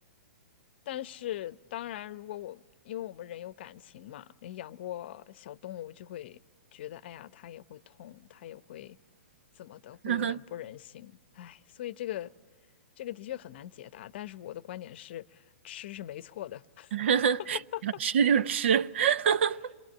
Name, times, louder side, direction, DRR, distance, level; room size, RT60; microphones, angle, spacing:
voice 1, 0.9-6.4 6.7-9.0 9.6-12.3 13.0-16.9 17.7-17.8, left 13 dB, 55° left, 0.7 m, -41 dB
voice 2, 10.0-10.4 16.9-19.7, right 7 dB, 60° right, 0.8 m, -26 dB
27.5 x 22.0 x 8.7 m
hypercardioid pair, 140°, 7 cm